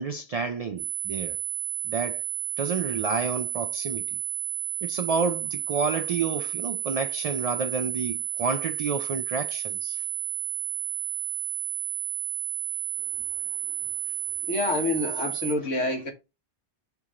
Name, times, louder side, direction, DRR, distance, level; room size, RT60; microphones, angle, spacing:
voice 1, 0.0-1.4 1.8-2.2 2.6-4.2 4.8-10.0, right 5 dB, 65° right, 0.3 m, -30 dB
sound 1, 0.8-15.5, right 11 dB, 80° right, 1.3 m, -32 dB
voice 2, 14.4-16.1, left 2 dB, 80° left, 1.7 m, -27 dB
5.6 x 4.6 x 3.7 m
omnidirectional pair, 1.3 m